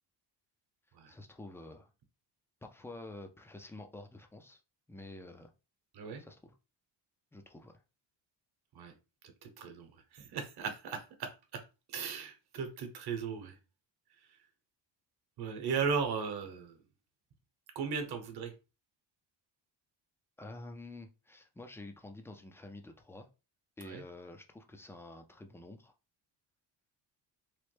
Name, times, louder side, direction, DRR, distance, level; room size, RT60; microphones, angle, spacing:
voice 1, 1.1-1.9 2.6-4.6 4.9-5.5 6.2-6.5 7.3-7.8 20.4-23.3 23.8-25.9, left 2 dB, 5° left, 5 dB, 0.3 m, -49 dB
voice 2, 9.4-11.6 11.9-13.6 15.4-16.8 17.7-18.5 23.8-24.0, right 6 dB, 55° right, 6 dB, 0.9 m, -37 dB
3.1 x 2.0 x 3.2 m, 0.29 s
cardioid pair, 110°, 45 cm